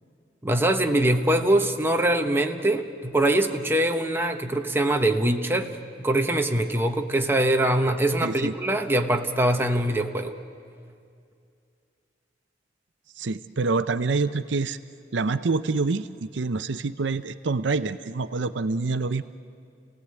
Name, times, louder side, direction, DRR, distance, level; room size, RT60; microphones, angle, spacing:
voice 1, 0.4-10.4, right 1 dB, 15° right, 4 dB, 1.1 m, -23 dB
voice 2, 8.2-8.5 13.2-14.8 15.1-19.2, right 3 dB, 75° right, 12 dB, 0.6 m, -26 dB
29.5 x 18.0 x 8.4 m, 2.4 s
head